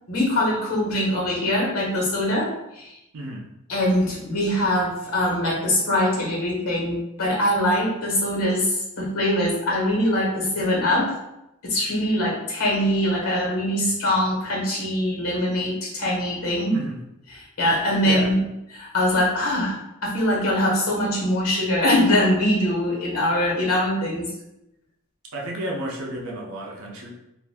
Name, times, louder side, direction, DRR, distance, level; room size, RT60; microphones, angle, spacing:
voice 1, 0.1-3.0 3.7-11.2 11.6-16.8 17.3-18.4 18.7-24.3, left 1 dB, 80° left, -3 dB, 1.1 m, -23 dB
voice 2, 3.1-3.5 16.7-17.0 18.1-18.3 25.3-27.1, right 1 dB, 70° right, -2 dB, 0.6 m, -32 dB
2.5 x 2.5 x 3.4 m, 0.88 s
head